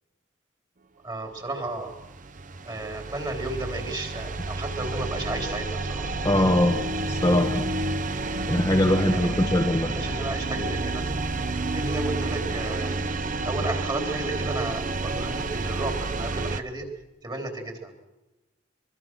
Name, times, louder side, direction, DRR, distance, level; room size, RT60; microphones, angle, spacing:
voice 1, 1.0-1.9 2.7-6.2 8.9-9.3 9.8-11.0 11.7-13.0 13.4-16.9 17.2-17.9, right 2 dB, 20° right, 3 dB, 3.5 m, -33 dB
sound 1, 1.7-16.6, right 2 dB, 40° right, 0.9 m, -30 dB
voice 2, 6.2-6.8 7.1-7.7 8.5-9.9, left 1 dB, 15° left, 2 dB, 1.3 m, -22 dB
24.0 x 23.5 x 6.1 m, 1.0 s
head